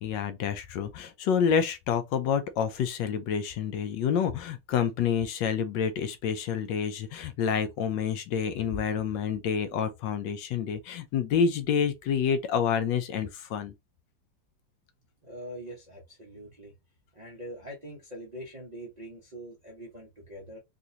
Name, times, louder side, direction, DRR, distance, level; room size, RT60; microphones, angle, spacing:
voice 1, 0.0-13.7, left 7 dB, 75° left, 1.2 m, -28 dB
voice 2, 15.3-16.7 17.1-20.6, equal, 40° right, 0.5 m, -43 dB
3.7 x 2.5 x 2.7 m
omnidirectional pair, 2.1 m